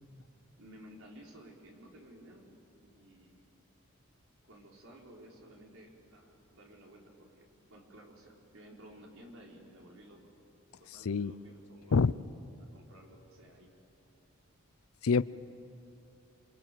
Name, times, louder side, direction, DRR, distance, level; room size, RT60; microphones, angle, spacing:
voice 1, 0.6-2.5 2.8-3.4 4.5-10.2 10.8-12.0 12.7-13.7, right 1 dB, 75° right, -1 dB, 4.6 m, -55 dB
voice 2, 11.1-11.3 11.9-12.1 15.0-15.2, left 5 dB, 90° left, 18 dB, 0.6 m, -25 dB
28.0 x 24.5 x 7.7 m, 2.9 s
head